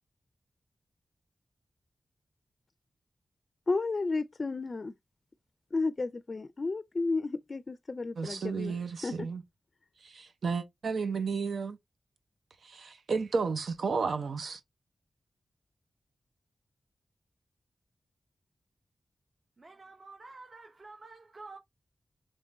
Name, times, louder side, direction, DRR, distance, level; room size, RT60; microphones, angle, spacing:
voice 1, 3.7-4.9 5.7-8.8 9.0-9.3, left 3 dB, 40° left, 0.4 m, -32 dB
voice 2, 8.2-9.4 10.0-11.8 12.6-14.6, right 5 dB, 85° right, 0.7 m, -32 dB
voice 3, 19.6-21.6, right 3 dB, 45° right, 0.8 m, -49 dB
3.6 x 3.2 x 4.0 m
wide cardioid pair, 115°, 0 cm